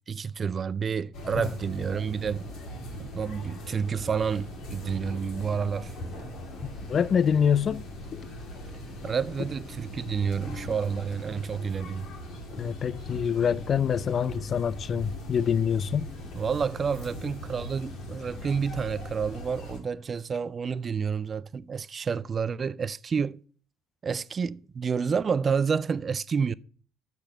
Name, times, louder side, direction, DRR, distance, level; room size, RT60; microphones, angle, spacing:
voice 1, 0.1-2.5 3.0-5.9 9.0-12.1 16.3-23.4 24.0-26.5, right 6 dB, 40° right, 0.3 m, -29 dB
sound 1, 1.1-19.8, equal, 60° left, 2.3 m, -40 dB
voice 2, 6.9-7.8 8.1-8.3 12.6-16.1, left 7 dB, 45° left, 0.3 m, -25 dB
6.6 x 6.0 x 5.6 m
hypercardioid pair, 55°, 0 cm